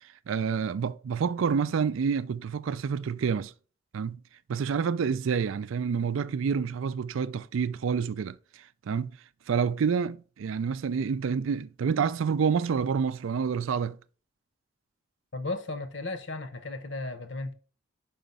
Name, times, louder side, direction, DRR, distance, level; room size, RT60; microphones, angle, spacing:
voice 1, 0.0-3.5 3.9-4.2 4.5-9.2 9.5-14.0, right 6 dB, 80° right, 0.4 m, -28 dB
voice 2, 15.3-17.5, left 2 dB, 65° left, 1.0 m, -35 dB
5.6 x 5.1 x 5.3 m
head